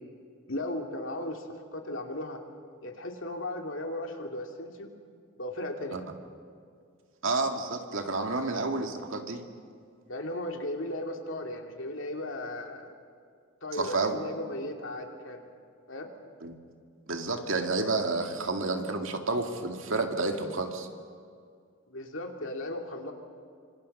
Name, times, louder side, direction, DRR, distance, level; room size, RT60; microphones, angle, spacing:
voice 1, 0.5-2.4 2.8-4.9 5.4-6.0 8.3-8.4 10.1-12.9 13.6-15.4 15.9-16.1 21.9-23.1, left 1 dB, 65° left, 3 dB, 2.7 m, -36 dB
voice 2, 7.2-9.4 13.7-14.2 16.4-16.5 17.1-20.9, right 3 dB, 70° right, 4 dB, 2.2 m, -30 dB
26.5 x 25.5 x 5.5 m, 2.2 s
head